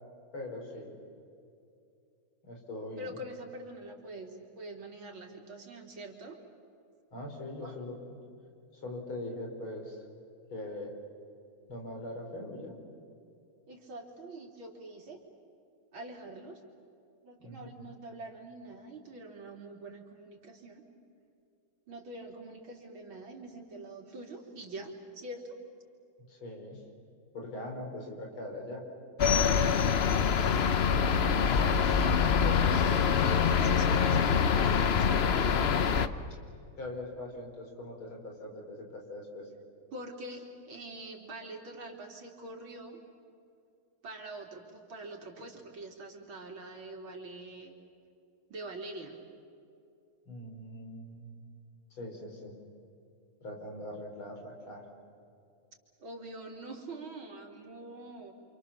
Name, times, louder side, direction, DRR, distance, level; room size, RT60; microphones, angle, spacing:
voice 1, 0.3-1.0 2.4-3.2 7.1-8.2 8.7-10.0 10.5-10.9 11.7-12.8 17.4-17.9 26.3-26.8 27.3-28.8 32.0-33.1 36.8-39.5 50.3-51.5 51.9-52.6 53.4-54.9, left 1 dB, 85° left, 2 dB, 5.2 m, -41 dB
voice 2, 3.0-6.4 7.6-7.8 13.7-15.2 15.9-16.6 17.2-20.8 21.9-25.6 30.8-32.2 33.0-36.1 39.9-43.0 44.0-47.7 48.5-49.2 56.0-58.3, right 2 dB, 80° right, 1 dB, 4.1 m, -45 dB
sound 1, 29.2-36.1, left 6 dB, 60° left, 0.6 m, -25 dB
28.5 x 28.0 x 7.2 m, 2.6 s
omnidirectional pair, 2.2 m